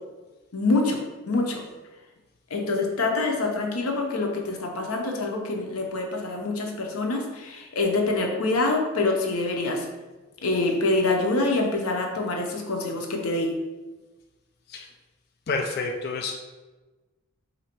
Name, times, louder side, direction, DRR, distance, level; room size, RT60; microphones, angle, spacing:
voice 1, 0.5-1.6 2.5-9.9 10.4-13.5, left 2 dB, 90° left, 2 dB, 0.7 m, -25 dB
voice 2, 15.5-16.3, left 3 dB, 45° left, 2 dB, 0.3 m, -29 dB
4.2 x 2.7 x 4.4 m, 1.2 s
head